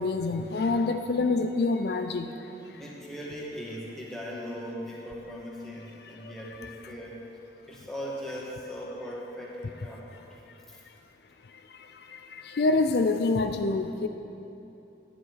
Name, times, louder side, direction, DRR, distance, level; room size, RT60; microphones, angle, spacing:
voice 1, 0.0-2.3 6.3-6.4 6.6-6.7 12.4-14.1, left 3 dB, 65° left, 7 dB, 0.4 m, -26 dB
voice 2, 2.8-7.2 7.7-10.0 10.3-10.4 10.7-10.8, equal, ahead, -5 dB, 1.7 m, -39 dB
11.0 x 10.0 x 4.7 m, 2.8 s
head